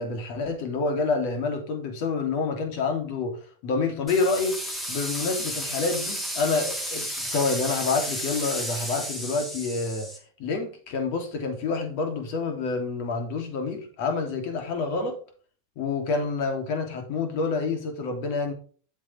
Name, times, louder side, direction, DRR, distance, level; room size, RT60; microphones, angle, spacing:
voice 1, 0.0-4.6 4.9-10.1 10.4-15.2 15.8-18.5, left 4 dB, 60° left, 3.0 m, -28 dB
sound 1, 4.1-10.2, equal, 10° left, 2.9 m, -32 dB
8.0 x 7.4 x 3.5 m
hypercardioid pair, 100°, 0 cm